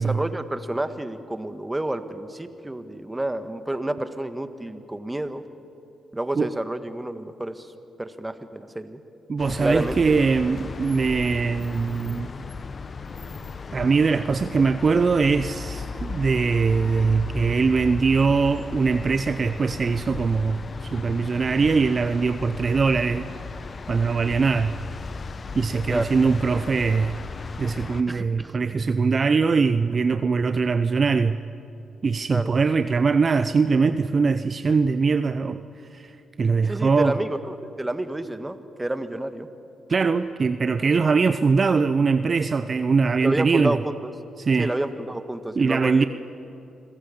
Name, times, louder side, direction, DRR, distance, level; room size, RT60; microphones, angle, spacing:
voice 1, 0.0-5.4 6.1-7.7 8.0-9.0 9.6-10.2 25.9-26.1 28.1-28.5 32.3-32.5 36.7-39.5 43.2-44.1 44.6-46.1, right 1 dB, 15° right, 10 dB, 1.7 m, -29 dB
voice 2, 9.3-12.3 13.7-23.3 23.9-24.7 25.5-27.2 27.6-31.4 32.0-35.6 35.9-36.1 36.4-37.2 39.9-43.8 44.4-44.7 45.6-46.0, right 4 dB, 45° right, 11 dB, 0.6 m, -22 dB
sound 1, 9.4-28.0, left 4 dB, 45° left, 1.0 m, -35 dB
26.5 x 16.5 x 7.2 m, 2.8 s
hypercardioid pair, 45°, 0 cm